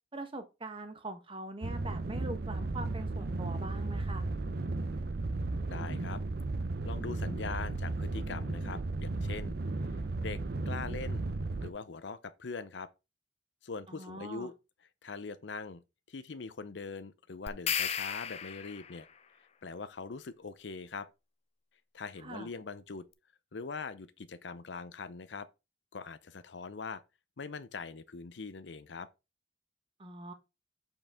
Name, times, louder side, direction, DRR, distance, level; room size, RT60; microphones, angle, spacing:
voice 1, 0.1-4.2 13.9-14.5 22.2-22.5 30.0-30.3, right 2 dB, 30° right, 1.1 m, -42 dB
sound 1, 1.6-11.7, right 2 dB, 60° right, 0.6 m, -35 dB
voice 2, 5.7-6.2 6.8-9.5 10.2-11.3 11.6-12.9 13.6-14.5 15.0-15.8 16.1-19.1 19.6-21.1 21.9-23.1 23.5-25.5 25.9-27.0 27.4-29.1, left 4 dB, 85° left, 0.7 m, -42 dB
sound 2, 17.5-19.0, left 8 dB, 35° left, 0.5 m, -34 dB
7.8 x 4.6 x 3.6 m
head